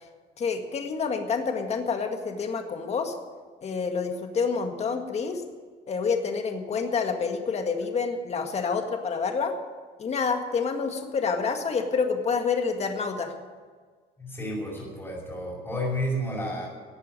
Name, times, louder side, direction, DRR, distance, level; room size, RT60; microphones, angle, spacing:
voice 1, 0.4-3.1 3.6-5.4 5.9-9.5 10.0-13.3, left 5 dB, 40° left, 5 dB, 1.9 m, -28 dB
voice 2, 14.2-16.7, equal, 15° left, -7 dB, 5.7 m, -31 dB
14.0 x 8.5 x 9.7 m, 1.5 s
cardioid pair, 110°, 17 cm